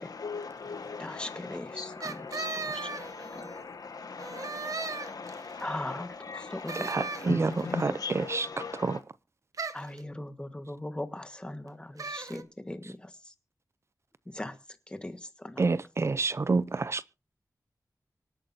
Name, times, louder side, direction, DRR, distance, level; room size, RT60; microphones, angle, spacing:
voice 1, 0.0-9.0, left 4 dB, 75° left, 1.6 m, -39 dB
voice 2, 1.0-2.3 2.5-2.9 3.2-3.3 5.6-7.3 7.7-8.0 9.7-13.1 14.3-14.6 14.9-15.6, left 1 dB, 15° left, 1.4 m, -39 dB
sound 1, 2.0-3.6 4.2-5.6 6.7-7.7 9.5-10.0 12.0-12.4, right 4 dB, 60° right, 1.1 m, -37 dB
voice 3, 6.9-7.5 7.8-8.5 8.8-9.0 15.6-17.1, right 3 dB, 45° right, 0.5 m, -28 dB
25.0 x 8.7 x 2.7 m
wide cardioid pair, 100°, 6 cm